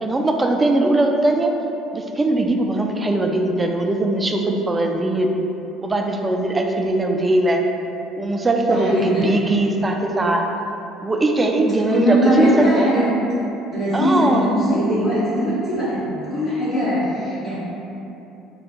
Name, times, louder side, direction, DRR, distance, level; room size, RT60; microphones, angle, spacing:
voice 1, 0.0-1.5 1.9-5.3 5.8-7.6 8.2-10.5 11.0-12.7 13.9-14.6, right 2 dB, 25° right, 3 dB, 0.4 m, -20 dB
voice 2, 8.7-9.3 11.9-13.0 13.7-17.6, equal, 65° left, -14 dB, 1.0 m, -20 dB
3.8 x 2.4 x 3.7 m, 3.0 s
hypercardioid pair, 60°, 0 cm